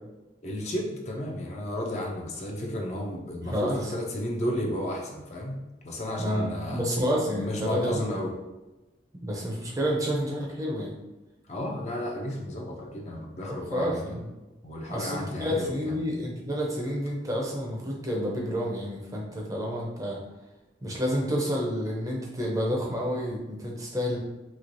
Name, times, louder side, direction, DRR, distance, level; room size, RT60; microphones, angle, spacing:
voice 1, 0.4-5.6 5.8-6.8 7.3-8.3 11.5-14.2 14.6-15.9, left 1 dB, 35° left, 0 dB, 0.4 m, -33 dB
voice 2, 3.4-3.9 6.2-8.2 9.2-10.9 13.5-14.3 14.9-20.2 20.8-24.2, equal, 20° right, -2 dB, 0.5 m, -29 dB
3.1 x 2.8 x 2.6 m, 1.1 s
head